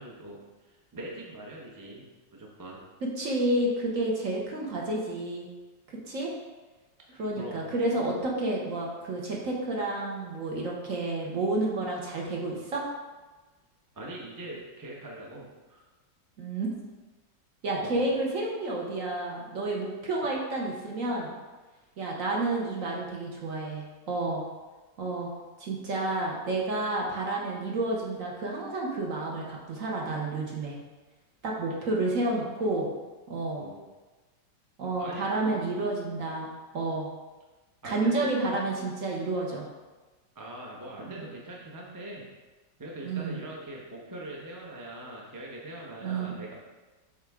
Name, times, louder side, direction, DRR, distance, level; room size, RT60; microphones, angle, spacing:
voice 1, 0.0-2.0 2.3-2.8 7.4-7.7 13.9-15.8 17.8-18.1 33.6-33.8 35.0-35.7 37.8-38.6 40.3-42.3 42.8-46.5, right 1 dB, 20° right, -3 dB, 0.5 m, -42 dB
voice 2, 3.0-5.5 6.0-6.3 7.2-12.8 16.4-16.7 17.6-21.3 22.0-24.4 25.0-25.3 25.6-30.7 31.4-32.9 33.3-33.6 34.8-37.1 37.8-39.6 41.1-41.2 43.0-43.4 46.0-46.4, right 2 dB, 55° right, -2 dB, 1.2 m, -30 dB
7.5 x 3.6 x 3.6 m, 1.2 s
omnidirectional pair, 1.9 m